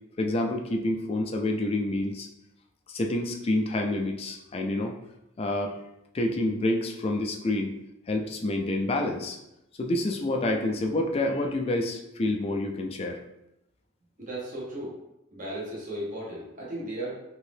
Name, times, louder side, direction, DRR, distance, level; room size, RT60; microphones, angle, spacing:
voice 1, 0.2-2.3 2.9-4.9 5.4-5.8 6.1-7.7 8.1-9.4 9.8-13.2, left 1 dB, 30° left, 2 dB, 0.3 m, -28 dB
voice 2, 14.2-15.0 15.3-17.2, right 1 dB, 40° right, -5 dB, 0.8 m, -35 dB
2.9 x 2.7 x 3.3 m, 0.87 s
head